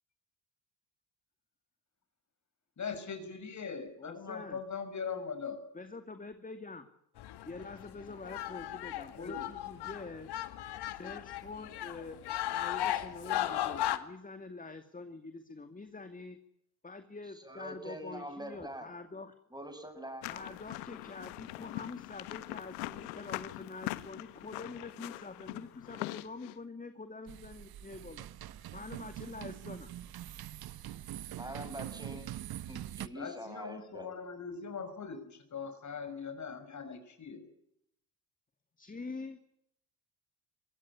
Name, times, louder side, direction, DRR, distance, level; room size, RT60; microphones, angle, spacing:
voice 1, 2.8-5.7 9.2-9.5 33.1-37.5, left 5 dB, 40° left, 9 dB, 5.9 m, -41 dB
voice 2, 4.0-4.6 5.7-6.9 7.4-10.3 10.8-16.4 16.8-19.3 20.3-28.3 28.7-29.9 38.8-39.4, left 3 dB, 20° left, 9 dB, 2.4 m, -46 dB
sound 1, 7.2-14.0, left 13 dB, 65° left, 2.2 m, -36 dB
voice 3, 17.4-18.9 19.5-20.2 31.3-32.3 32.7-34.1, right 1 dB, 10° right, 9 dB, 7.8 m, -44 dB
sound 2, 20.2-26.6, left 19 dB, 90° left, 1.4 m, -42 dB
sound 3, 27.3-33.1, right 12 dB, 55° right, 1.2 m, -44 dB
23.5 x 18.5 x 9.8 m, 0.76 s
supercardioid pair, 75°, 43 cm